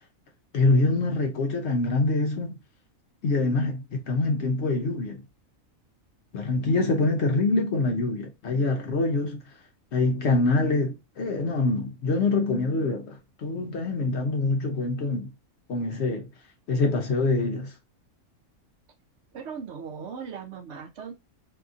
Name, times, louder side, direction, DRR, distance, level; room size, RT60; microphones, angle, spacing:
voice 1, 0.5-2.6 3.2-5.2 6.3-9.4 9.9-15.3 15.7-16.3 16.7-17.7, left 3 dB, 60° left, 0.8 m, -25 dB
voice 2, 19.3-21.1, right 6 dB, 65° right, 0.8 m, -38 dB
2.8 x 2.5 x 2.4 m
omnidirectional pair, 1.4 m